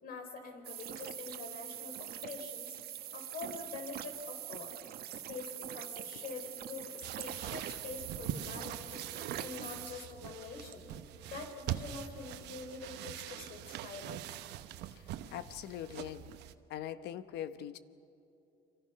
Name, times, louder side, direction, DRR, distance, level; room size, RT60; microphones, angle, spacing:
voice 1, 0.0-2.8 3.1-4.7 5.1-10.8 11.2-14.2, left 4 dB, 60° left, 4 dB, 5.0 m, -45 dB
sound 1, 0.6-9.9, right 11 dB, 65° right, 1.4 m, -44 dB
sound 2, 7.0-16.5, right 12 dB, 85° right, 1.0 m, -43 dB
voice 2, 15.3-16.3 16.7-17.8, left 11 dB, 80° left, 12 dB, 1.1 m, -41 dB
30.0 x 25.0 x 5.9 m, 2.7 s
cardioid pair, 110°, 17 cm